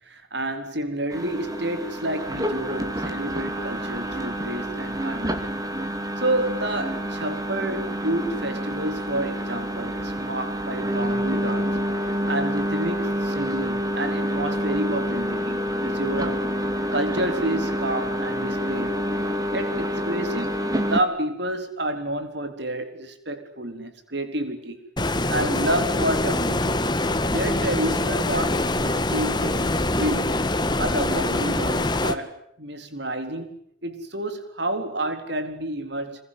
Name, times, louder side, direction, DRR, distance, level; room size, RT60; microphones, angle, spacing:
voice 1, 0.1-5.5 6.2-11.7 12.0-16.5 16.9-19.0 19.5-24.8 25.1-26.8 27.3-30.4 30.7-36.2, right 1 dB, 55° right, 8 dB, 4.0 m, -29 dB
sound 1, 1.1-21.0, equal, 20° right, 2.6 m, -28 dB
Stream, 25.0-32.1, left 2 dB, 20° left, 1.7 m, -24 dB
27.0 x 22.0 x 9.6 m, 0.71 s
head